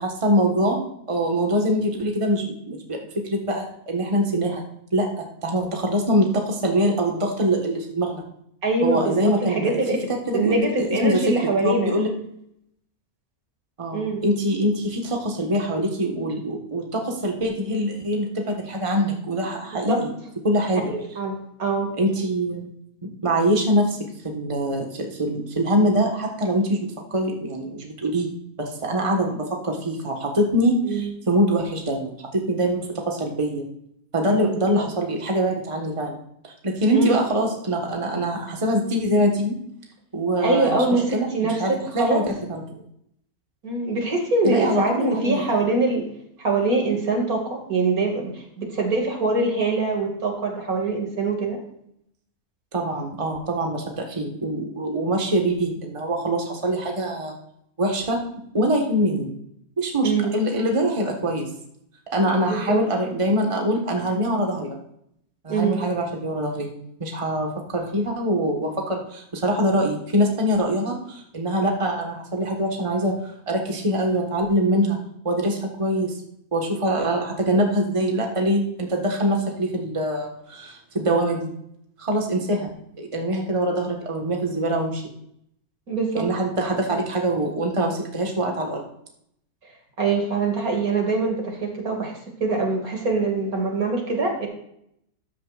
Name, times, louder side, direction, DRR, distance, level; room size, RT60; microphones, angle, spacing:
voice 1, 0.0-4.6 4.9-8.2 8.8-9.8 10.3-11.4 11.6-12.1 13.8-20.1 20.4-20.8 22.0-22.6 23.0-24.0 24.2-28.3 28.6-33.6 34.1-36.2 36.4-39.5 40.1-40.8 41.1-42.6 44.4-45.4 52.7-57.3 57.8-58.2 58.5-59.3 59.8-61.5 62.1-64.8 65.4-66.7 67.0-75.0 75.2-76.2 76.5-81.5 82.0-82.7 83.0-85.0 86.2-88.8, right 1 dB, 20° right, 1 dB, 1.5 m, -24 dB
voice 2, 8.6-10.0 10.3-12.0 13.9-14.2 19.9-20.0 20.9-21.9 30.8-31.1 34.4-34.8 36.9-37.2 40.4-42.2 43.6-46.1 46.4-51.6 60.0-60.3 62.5-62.8 65.5-65.8 85.9-86.2 90.0-94.5, right 3 dB, 65° right, 1 dB, 2.8 m, -24 dB
13.5 x 9.4 x 2.5 m, 0.73 s
omnidirectional pair, 1.6 m